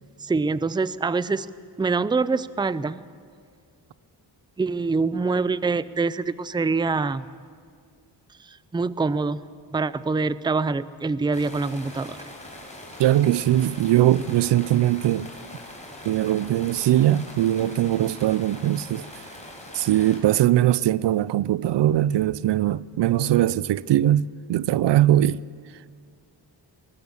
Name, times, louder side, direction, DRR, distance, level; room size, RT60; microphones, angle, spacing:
voice 1, 0.2-1.5 1.8-3.0 4.6-7.3 8.7-9.4 9.7-12.2, right 4 dB, 10° right, 0.5 m, -25 dB
sound 1, 11.3-20.2, left 1 dB, 15° left, 5.0 m, -42 dB
voice 2, 13.0-15.3 16.0-19.1 19.7-25.4, right 13 dB, 75° right, 0.5 m, -21 dB
20.5 x 19.0 x 7.1 m
cardioid pair, 95°, 43 cm